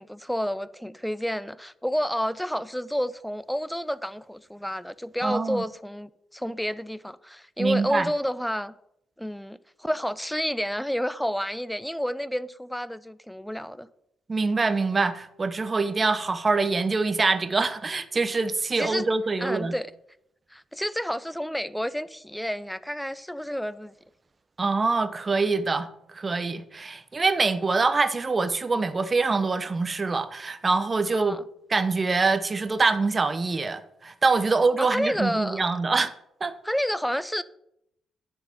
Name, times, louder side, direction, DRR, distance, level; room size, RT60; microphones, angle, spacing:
voice 1, 0.0-8.8 9.2-13.9 18.8-19.1 19.4-19.9 20.5-23.9 31.1-31.4 34.8-35.7 36.6-37.4, equal, 5° left, 0.5 m, -30 dB
voice 2, 5.2-5.6 7.6-8.1 14.3-19.7 24.6-25.9 26.1-31.4 31.7-36.1 36.4-36.5, right 3 dB, 35° right, 0.9 m, -24 dB
10.5 x 4.5 x 7.0 m
figure-of-eight pair, 40°, 0 cm